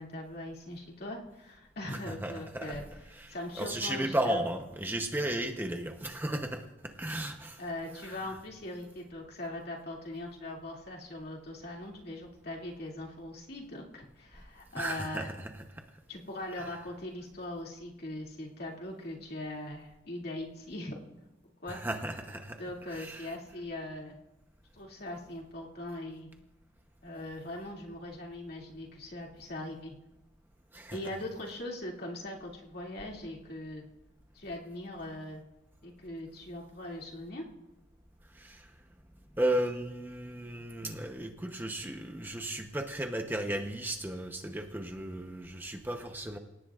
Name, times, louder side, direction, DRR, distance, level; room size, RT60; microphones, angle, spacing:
voice 1, 0.0-2.8 3.3-4.4 7.6-15.3 16.1-21.0 21.6-21.8 22.6-24.2 24.7-26.3 27.0-30.0 30.9-33.8 34.3-35.4 35.8-37.4, left 1 dB, 55° left, -1 dB, 2.6 m, -40 dB
voice 2, 1.9-7.6 7.9-8.4 14.8-15.6 16.6-16.8 21.7-23.4 30.7-31.0 38.3-38.7 39.4-46.4, right 1 dB, 10° right, 4 dB, 0.9 m, -35 dB
27.5 x 17.0 x 2.5 m, 0.99 s
head